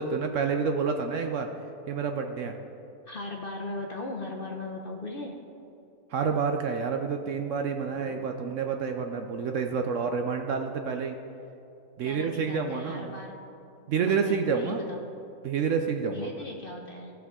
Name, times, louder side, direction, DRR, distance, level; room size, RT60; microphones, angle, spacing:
voice 1, 0.0-1.5 1.9-2.5 6.1-11.2 12.0-13.2 13.9-14.9 15.4-16.3, right 5 dB, 65° right, 5 dB, 0.8 m, -28 dB
voice 2, 3.1-5.3 7.9-8.3 12.0-13.4 13.8-15.1 16.1-17.1, left 2 dB, 50° left, 1 dB, 0.7 m, -38 dB
16.0 x 6.0 x 3.6 m, 2.7 s
omnidirectional pair, 1.7 m